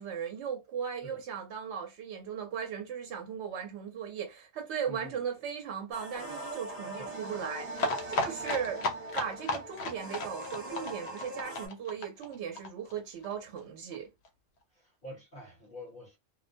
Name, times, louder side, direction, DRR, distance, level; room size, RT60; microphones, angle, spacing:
voice 1, 0.0-7.8 8.1-8.8 9.2-14.1, right 7 dB, 85° right, 0.9 m, -37 dB
voice 2, 4.9-5.2 7.0-7.1 8.4-8.6 14.7-16.2, left 1 dB, 55° left, 1.1 m, -47 dB
sound 1, 5.9-11.7, right 2 dB, 40° right, 1.0 m, -41 dB
sound 2, 7.7-13.3 13.6-13.7 13.9-14.0 14.3-14.4, left 2 dB, 75° left, 0.9 m, -34 dB
2.3 x 2.1 x 2.5 m
omnidirectional pair, 1.1 m